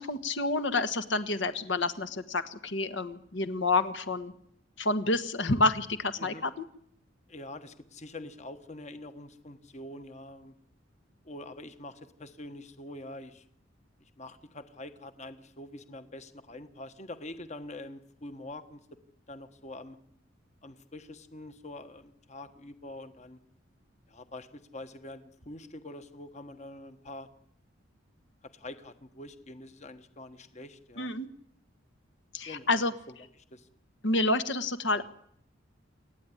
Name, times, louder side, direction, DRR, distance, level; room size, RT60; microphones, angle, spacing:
voice 1, 0.0-4.3 4.8-6.6 31.0-31.3 32.3-32.9 34.0-35.0, left 2 dB, 65° left, 10 dB, 1.4 m, -29 dB
voice 2, 7.3-10.5 11.2-13.4 14.0-18.8 19.3-20.0 20.6-23.4 24.1-27.3 28.4-31.1 32.5-33.1 33.5-33.7, left 2 dB, 35° left, 10 dB, 1.4 m, -45 dB
28.0 x 13.0 x 10.0 m, 0.70 s
head